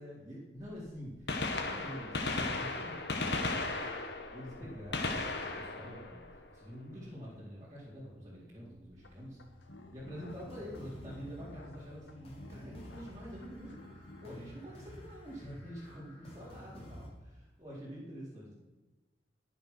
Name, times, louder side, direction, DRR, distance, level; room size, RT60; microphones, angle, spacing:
voice 1, 0.0-3.6 4.3-6.2 6.5-9.4 9.9-18.5, equal, 20° right, -9 dB, 4.3 m, -47 dB
Gunshot gunfire, 0.6-0.7 1.1-7.0 8.9-9.1 10.1-10.2 11.8-11.9 13.3-13.4 13.5-13.6, left 3 dB, 65° left, 1.8 m, -36 dB
sound 1, 9.0-14.3, left 2 dB, 85° left, 1.7 m, -54 dB
sound 2, 10.3-17.1, equal, 35° left, 3.9 m, -52 dB
21.5 x 7.2 x 6.0 m, 1.2 s
head